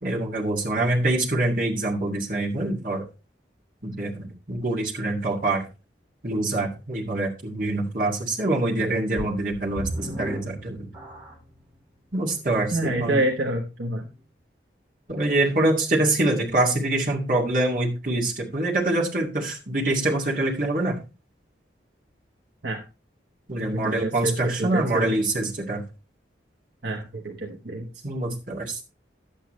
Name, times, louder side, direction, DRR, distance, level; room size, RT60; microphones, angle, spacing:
voice 1, 0.0-3.0 3.8-5.6 6.2-10.9 12.1-13.2 15.1-21.0 23.5-25.8 28.0-28.8, right 2 dB, 45° right, -3 dB, 2.3 m, -25 dB
sound 1, 9.2-11.6 12.2-12.3 12.9-13.0, equal, 25° right, 5.0 m, -35 dB
voice 2, 12.7-14.1 22.6-22.8 23.7-25.1 26.8-27.9, right 1 dB, 70° right, 1 dB, 1.2 m, -27 dB
11.0 x 8.5 x 3.1 m, 0.29 s
head